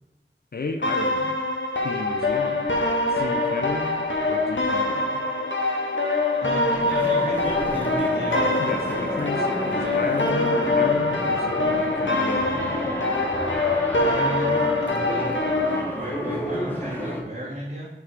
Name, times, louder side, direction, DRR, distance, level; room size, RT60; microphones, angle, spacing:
voice 1, 0.5-1.4 1.8-2.7 3.1-5.2 8.6-13.0, left 3 dB, 55° left, 5 dB, 0.5 m, -33 dB
sound 1, 0.8-15.8, left 2 dB, 85° left, 1.0 m, -24 dB
voice 2, 6.4-8.5 9.7-10.0 14.0-15.3 15.9-17.9, right 1 dB, 50° right, -6 dB, 1.5 m, -34 dB
sound 2, 6.7-17.2, equal, 10° left, 1.1 m, -31 dB
8.0 x 4.0 x 4.5 m, 1.1 s
wide cardioid pair, 50°, 19 cm